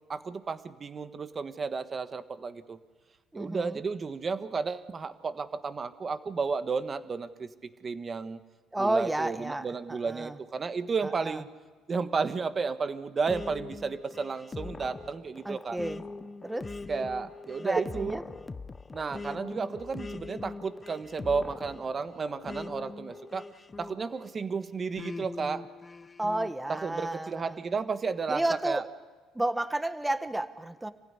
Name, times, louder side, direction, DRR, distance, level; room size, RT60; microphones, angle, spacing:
voice 1, 0.1-2.8 3.3-8.4 8.8-11.5 11.9-15.8 16.9-18.2 18.9-23.5 23.8-25.6 26.7-28.8, right 5 dB, 35° right, 10 dB, 1.4 m, -33 dB
voice 2, 3.3-3.8 8.7-10.4 11.0-11.4 15.4-16.0 16.4-16.7 17.6-18.2 19.6-19.7 26.2-27.6 28.3-28.8 29.3-30.9, right 1 dB, 10° right, 10 dB, 1.5 m, -31 dB
sound 1, 13.3-24.3 25.0-26.5, left 3 dB, 20° left, 0.8 m, -42 dB
26.5 x 16.0 x 9.9 m, 1.4 s
cardioid pair, 95°, 0 cm